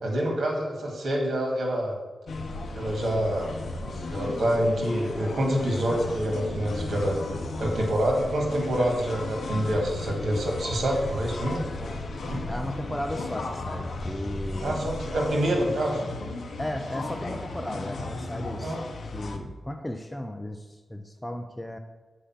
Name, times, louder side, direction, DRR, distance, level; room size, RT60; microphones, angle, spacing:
voice 1, 0.0-2.0 2.7-3.6 4.1-7.2 7.6-11.6 12.3-12.4 14.6-16.0 18.6-18.8, right 1 dB, 75° right, 0 dB, 1.9 m, -26 dB
sound 1, 2.3-19.4, left 2 dB, 65° left, 0.7 m, -35 dB
voice 2, 12.5-14.8 16.6-18.7 19.1-21.8, left 1 dB, 10° left, 5 dB, 0.4 m, -35 dB
6.9 x 5.0 x 5.7 m, 1.3 s
wide cardioid pair, 145°, 0 cm